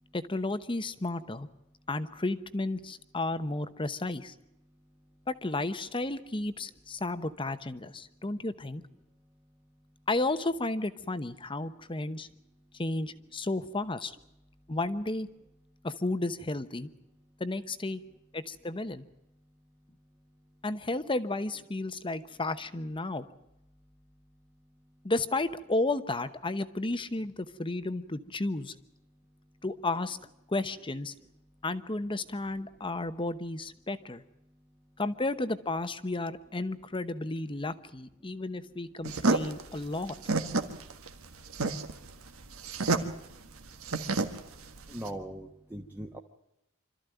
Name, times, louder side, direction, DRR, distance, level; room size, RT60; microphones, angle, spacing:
voice 1, 0.1-1.5 1.9-4.3 5.3-8.8 10.1-12.3 12.8-14.1 14.7-15.3 15.8-16.9 17.4-18.0 18.3-19.1 20.6-23.2 25.0-28.7 29.6-30.2 30.5-31.1 31.6-34.2 35.0-40.2 43.0-43.1, left 2 dB, 25° left, 12 dB, 0.9 m, -33 dB
sound 1, 39.0-45.1, right 3 dB, 75° right, 1.6 m, -30 dB
voice 2, 44.9-46.2, right 1 dB, 10° right, 1 dB, 1.2 m, -40 dB
26.0 x 13.5 x 9.1 m, 0.88 s
head